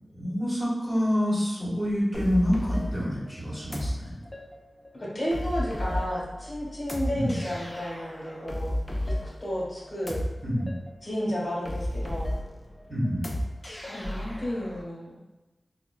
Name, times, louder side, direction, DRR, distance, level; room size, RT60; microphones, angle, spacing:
voice 1, 0.1-4.2 7.1-7.4 10.4-10.7 12.9-13.3, equal, 20° right, -7 dB, 1.4 m, -27 dB
sound 1, 2.1-14.8, left 1 dB, 20° left, 0.6 m, -34 dB
voice 2, 4.9-8.7 9.0-10.2 11.0-12.3 13.8-15.2, equal, 45° left, -7 dB, 1.3 m, -32 dB
3.7 x 2.2 x 2.2 m, 1.1 s
cardioid pair, 55°, 0 cm